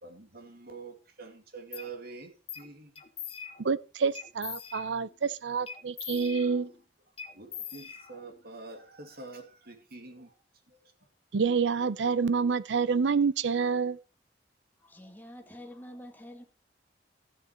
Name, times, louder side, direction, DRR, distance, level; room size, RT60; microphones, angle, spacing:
voice 1, 0.0-2.9 7.3-10.3 10.7-10.8, right 4 dB, 60° right, 2.2 m, -46 dB
sound 1, 1.7-1.9 2.5-2.7 3.0-3.8 4.1-5.2 5.7-6.8 7.2-8.4, left 7 dB, 30° left, 1.0 m, -42 dB
voice 2, 3.6-6.7 11.3-14.0, right 5 dB, 80° right, 0.5 m, -28 dB
voice 3, 14.8-16.4, equal, 10° left, 1.7 m, -47 dB
13.0 x 8.2 x 4.3 m
head